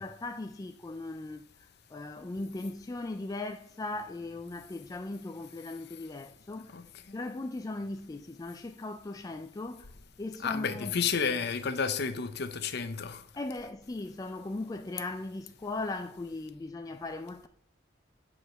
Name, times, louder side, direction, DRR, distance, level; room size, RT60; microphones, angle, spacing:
voice 1, 0.0-6.8 7.1-9.9 10.2-10.9 13.3-17.5, left 2 dB, 20° left, 0.3 m, -38 dB
voice 2, 6.7-7.2 10.4-13.2, left 6 dB, 55° left, 0.8 m, -31 dB
8.9 x 4.8 x 6.6 m
head